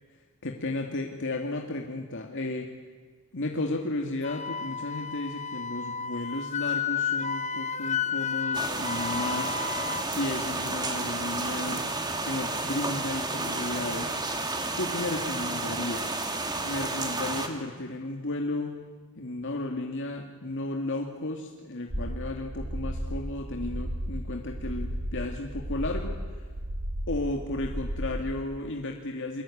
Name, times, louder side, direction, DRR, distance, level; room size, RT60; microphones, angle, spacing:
voice 1, 0.4-2.7 3.3-9.6 10.0-11.9 12.2-14.2 14.8-16.2 16.6-18.8 19.2-26.5 27.1-29.4, left 2 dB, 55° left, 1 dB, 2.3 m, -33 dB
Wind instrument woodwind instrument, 4.2-10.0, left 7 dB, 30° left, 1.0 m, -32 dB
sound 1, 8.5-17.5, right 2 dB, 20° right, 2.6 m, -31 dB
sound 2, 21.9-28.3, equal, 70° right, 4.7 m, -34 dB
29.0 x 23.0 x 8.6 m, 1.5 s
head